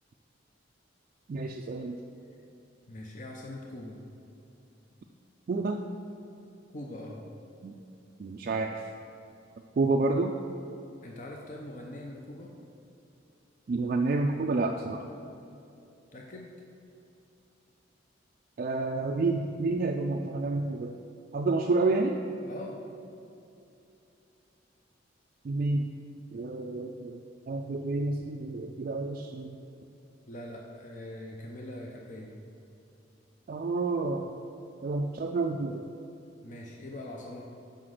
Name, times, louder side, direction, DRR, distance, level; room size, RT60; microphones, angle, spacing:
voice 1, 1.3-2.0 5.5-5.8 7.6-7.7 8.2-8.9 9.8-10.4 13.7-15.1 18.6-20.9 21.3-22.2 25.4-25.9 26.3-29.6 33.5-34.3 34.8-35.9, right 3 dB, 45° right, 2 dB, 0.3 m, -29 dB
voice 2, 2.9-4.0 6.7-7.2 11.0-12.5 16.1-16.5 22.5-22.8 30.3-32.4 36.4-37.5, left 1 dB, 40° left, -1 dB, 0.6 m, -42 dB
5.8 x 5.1 x 6.3 m, 2.8 s
head